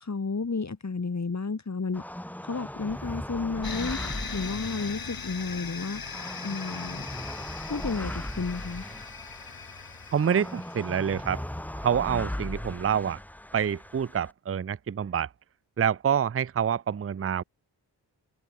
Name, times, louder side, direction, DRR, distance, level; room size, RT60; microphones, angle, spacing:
voice 1, 0.0-2.0 2.4-4.0 4.3-6.0 6.4-7.1 7.7-8.8, left 4 dB, 40° left, 2.0 m, -32 dB
sound 1, 1.9-14.3, left 1 dB, 5° left, 0.7 m, -38 dB
sound 2, 2.7-8.4, right 6 dB, 80° right, 5.1 m, -57 dB
sound 3, 3.6-11.2, left 5 dB, 55° left, 2.3 m, -40 dB
voice 2, 10.1-11.4 11.8-13.2 13.5-15.3 15.8-17.4, right 8 dB, 30° right, 0.5 m, -27 dB
wide cardioid pair, 75°, 43 cm